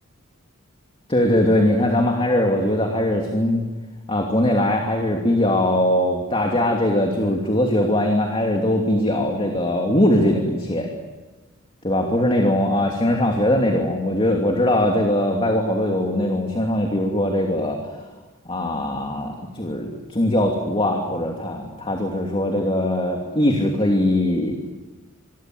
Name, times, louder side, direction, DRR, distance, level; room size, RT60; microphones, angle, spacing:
voice 1, 1.1-3.6 4.1-10.9 11.8-17.8 18.4-24.7, left 1 dB, 25° left, 1 dB, 2.8 m, -21 dB
27.0 x 23.5 x 7.9 m, 1.2 s
head